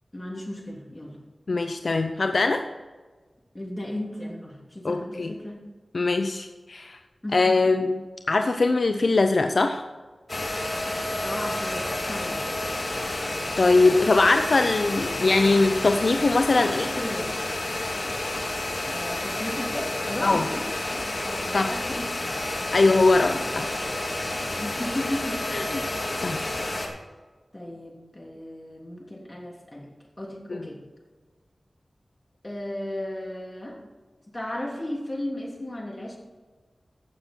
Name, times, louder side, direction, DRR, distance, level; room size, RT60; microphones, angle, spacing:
voice 1, 0.1-1.2 3.5-5.6 7.2-7.7 11.2-12.4 16.6-17.4 18.8-20.7 20.9-22.6 23.0-23.7 24.6-25.8 27.5-29.9 30.2-30.8 32.4-33.8 34.3-36.2, left 1 dB, 25° left, -1 dB, 3.0 m, -35 dB
voice 2, 1.5-2.6 4.8-5.3 5.9-7.0 7.3-8.0 8.3-9.8 13.6-16.9 20.2-20.4 21.5-21.7 22.7-23.7 25.5-25.6 26.2-26.4 30.5-30.6, left 3 dB, 65° left, 6 dB, 0.6 m, -21 dB
sound 1, 10.3-26.9, left 1 dB, 45° left, 2.0 m, -30 dB
15.5 x 6.8 x 4.5 m, 1.3 s
wide cardioid pair, 70°, 0 cm